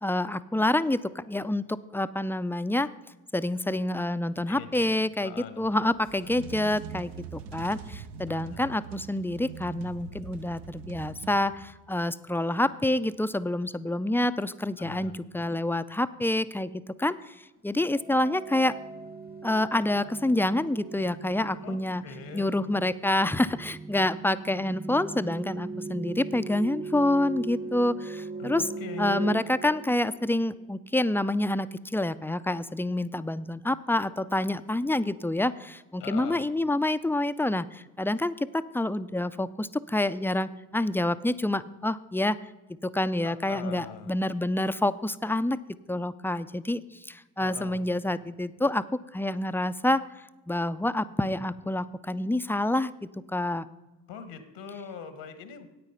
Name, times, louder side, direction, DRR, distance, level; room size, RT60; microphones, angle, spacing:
voice 1, 0.0-2.9 3.3-18.8 19.4-22.0 22.3-28.7 29.0-42.4 42.8-45.6 45.9-48.9 49.1-50.0 50.5-53.7, left 1 dB, 5° left, 13 dB, 0.4 m, -27 dB
voice 2, 4.5-4.9 5.2-5.9 6.2-6.3 8.3-8.6 14.8-15.2 21.6-22.5 28.4-29.4 36.0-36.5 43.2-44.2 47.4-47.8 54.1-55.7, left 7 dB, 75° left, 11 dB, 1.3 m, -42 dB
sound 1, 5.9-11.9, right 7 dB, 75° right, 0.8 m, -42 dB
sound 2, 17.9-30.6, right 3 dB, 20° right, 0.9 m, -39 dB
9.2 x 8.7 x 5.6 m, 1.1 s
hypercardioid pair, 45°, 42 cm